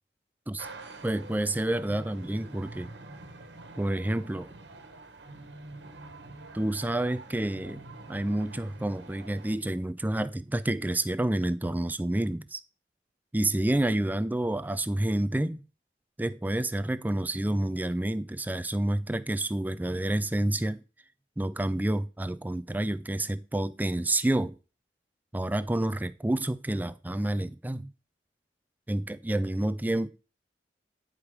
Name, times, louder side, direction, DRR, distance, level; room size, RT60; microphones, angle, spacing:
sound 1, 0.6-9.6, right 2 dB, 85° right, 1.4 m, -46 dB
voice 1, 1.0-2.9 3.8-4.5 6.5-12.6 13.3-15.6 16.2-20.8 21.4-24.6 25.3-27.9 28.9-30.1, right 1 dB, 10° right, 0.4 m, -29 dB
10.0 x 4.9 x 5.0 m
head